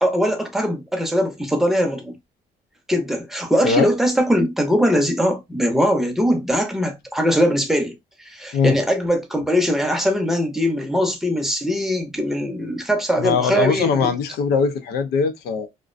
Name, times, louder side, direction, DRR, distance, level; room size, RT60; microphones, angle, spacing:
voice 1, 0.0-2.1 2.9-8.0 8.3-14.1, equal, ahead, 0.7 m, -21 dB
voice 2, 13.2-15.7, left 5 dB, 90° left, 0.6 m, -21 dB
2.5 x 2.1 x 2.4 m
cardioid pair, 105°, 16 cm